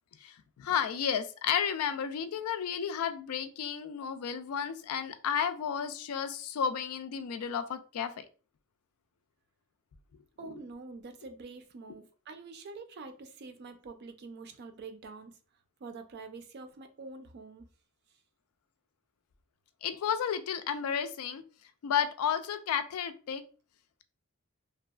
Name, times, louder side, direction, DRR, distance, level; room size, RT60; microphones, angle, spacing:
voice 1, 0.2-8.3 19.8-21.4 21.8-23.4, left 8 dB, 80° left, 0.3 m, -32 dB
voice 2, 10.4-15.3 15.8-17.7, right 3 dB, 50° right, 0.4 m, -46 dB
2.7 x 2.3 x 2.2 m
head